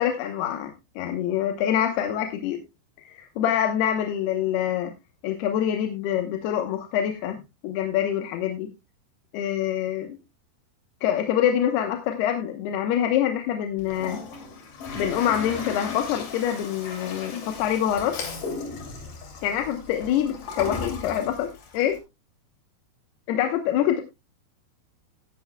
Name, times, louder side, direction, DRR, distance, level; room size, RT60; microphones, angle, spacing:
voice 1, 0.0-2.6 3.0-4.9 5.2-7.4 7.6-8.7 9.3-10.2 11.0-14.2 14.9-18.2 19.4-21.5 21.7-22.0 23.3-24.0, left 10 dB, 75° left, 5 dB, 2.8 m, -25 dB
Toilet flush, 13.8-22.0, left 4 dB, 50° left, 3.8 m, -36 dB
16.5 x 10.5 x 2.2 m, 0.24 s
omnidirectional pair, 5.0 m